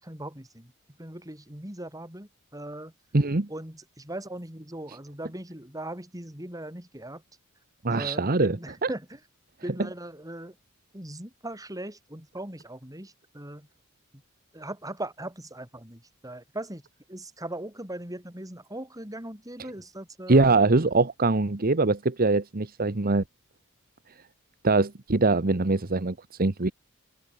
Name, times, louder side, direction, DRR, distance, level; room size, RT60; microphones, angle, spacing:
voice 1, 0.0-0.7 1.0-2.9 3.5-7.2 7.9-9.0 9.6-10.5 10.9-13.7 14.5-16.8 17.1-20.5, right 1 dB, 15° right, 5.8 m, -39 dB
voice 2, 3.1-3.5 4.9-5.0 7.8-8.9 9.8-9.9 19.6-19.7 20.3-23.2 24.6-26.7, right 3 dB, 40° right, 1.1 m, -23 dB
head